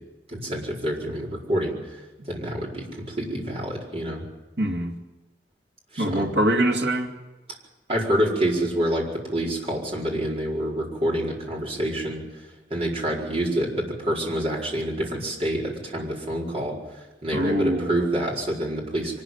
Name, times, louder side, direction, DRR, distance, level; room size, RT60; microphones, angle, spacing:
voice 1, 0.3-1.8 2.3-4.2 5.9-6.3 7.9-12.2 12.7-16.8 17.2-19.2, right 1 dB, 35° right, -3 dB, 4.8 m, -27 dB
voice 2, 4.6-4.9 6.0-7.1 17.3-18.0, right 1 dB, 70° right, 1 dB, 2.4 m, -23 dB
24.0 x 13.0 x 9.4 m, 1.1 s
head